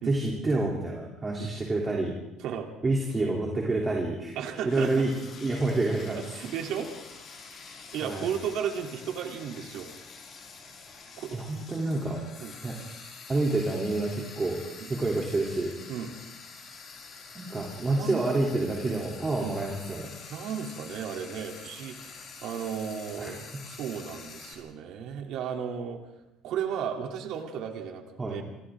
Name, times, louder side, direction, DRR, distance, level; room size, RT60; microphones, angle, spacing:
voice 1, 0.0-2.1 2.8-4.3 4.6-5.1 5.4-6.2 8.0-8.3 11.3-12.2 12.6-12.7 13.3-14.6 14.9-15.7 17.3-20.1 23.2-23.3 28.2-28.4, right 2 dB, 20° right, -2 dB, 3.2 m, -28 dB
voice 2, 4.3-5.0 6.1-6.9 7.9-9.9 11.2-11.4 12.4-12.5 14.8-14.9 15.9-16.1 17.8-18.2 18.8-19.0 19.4-19.6 20.3-26.0 26.4-28.4, right 8 dB, 60° right, 2 dB, 3.2 m, -34 dB
Frying (food), 4.7-24.5, left 4 dB, 40° left, 5.5 m, -46 dB
29.5 x 25.5 x 3.8 m, 0.89 s
cardioid pair, 155°, 0 cm